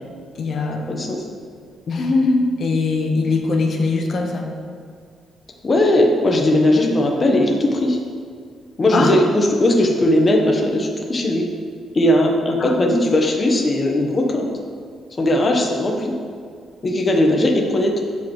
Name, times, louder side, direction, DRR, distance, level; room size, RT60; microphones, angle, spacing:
voice 1, 0.3-1.1 1.9-4.5 8.9-9.2 12.6-12.7, left 3 dB, 45° left, 2 dB, 1.1 m, -21 dB
voice 2, 0.9-1.2 5.6-8.0 8.8-11.4 11.9-14.5 15.2-16.2 16.8-18.0, left 1 dB, 25° left, 1 dB, 1.1 m, -18 dB
14.5 x 5.3 x 3.2 m, 2.1 s
cardioid pair, 145°, 0 cm